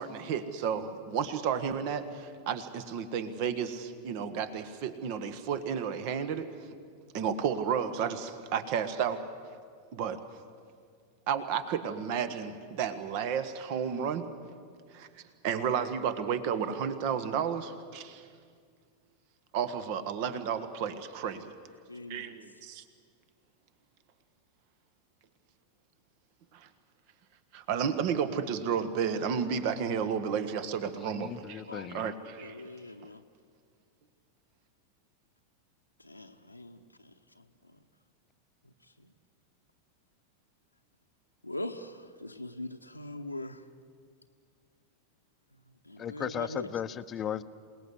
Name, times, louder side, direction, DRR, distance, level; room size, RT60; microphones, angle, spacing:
voice 1, 0.0-6.5 7.1-9.2 9.9-10.2 11.3-14.3 14.9-15.1 15.4-18.2 19.5-21.5 22.1-22.8 26.5-26.7 27.5-32.6, right 7 dB, 45° right, 12 dB, 1.5 m, -32 dB
voice 2, 21.9-22.3 31.7-31.9 32.4-33.2 36.0-36.8 41.4-43.6 45.9-46.7, left 1 dB, 85° left, 3 dB, 0.9 m, -41 dB
voice 3, 31.0-32.1 46.0-47.4, left 9 dB, 25° left, 12 dB, 0.8 m, -36 dB
27.0 x 19.0 x 8.0 m, 2.1 s
figure-of-eight pair, 90°, 0 cm